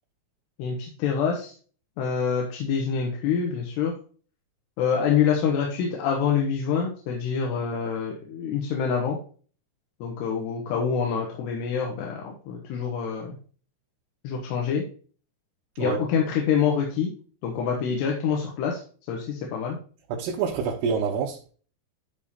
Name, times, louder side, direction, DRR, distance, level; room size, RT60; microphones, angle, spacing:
voice 1, 0.6-1.5 2.0-3.9 4.8-9.2 10.0-13.4 14.2-14.8 15.8-17.1 17.4-18.8 19.1-19.8, left 7 dB, 90° left, 3.4 m, -26 dB
voice 2, 20.1-21.5, right 6 dB, 80° right, 3.1 m, -27 dB
11.5 x 3.8 x 4.2 m
omnidirectional pair, 4.7 m